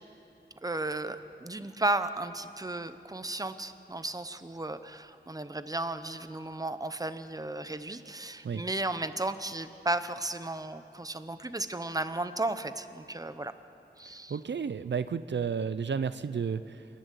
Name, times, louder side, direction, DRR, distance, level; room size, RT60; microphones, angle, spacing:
voice 1, 0.6-13.5 14.0-14.4, right 2 dB, 20° right, 11 dB, 0.8 m, -34 dB
voice 2, 14.3-16.9, right 6 dB, 80° right, 13 dB, 0.5 m, -32 dB
28.5 x 11.5 x 8.3 m, 2.8 s
wide cardioid pair, 75°, 18 cm